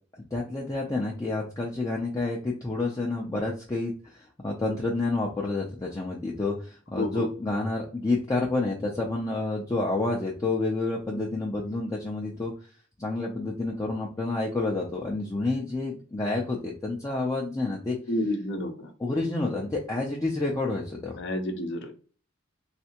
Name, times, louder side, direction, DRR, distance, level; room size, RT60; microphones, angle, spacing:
voice 1, 0.2-12.5 13.0-18.0 19.0-21.2, left 2 dB, 15° left, -3 dB, 0.5 m, -29 dB
voice 2, 7.0-7.3 18.1-18.9 21.2-22.0, left 1 dB, 60° left, 5 dB, 0.7 m, -30 dB
3.3 x 2.7 x 2.9 m, 0.39 s
head